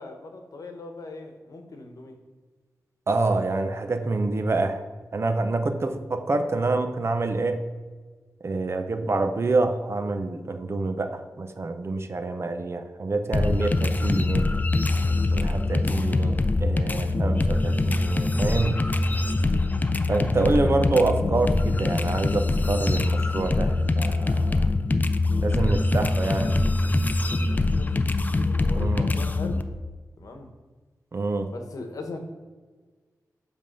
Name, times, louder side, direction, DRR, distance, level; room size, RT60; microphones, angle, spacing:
voice 1, 0.0-2.2 14.9-15.2 19.1-19.3 27.7-27.9 28.4-29.7 30.2-30.5 31.5-32.2, left 3 dB, 65° left, 5 dB, 1.0 m, -40 dB
voice 2, 3.1-4.9 5.1-7.6 8.4-14.5 15.3-18.8 20.1-24.7 25.4-26.6 28.8-29.1 31.1-31.5, right 3 dB, 45° right, 7 dB, 0.6 m, -26 dB
sound 1, 13.3-29.6, left 2 dB, 25° left, 0.4 m, -24 dB
7.6 x 3.5 x 5.3 m, 1.4 s
wide cardioid pair, 90°, 6 cm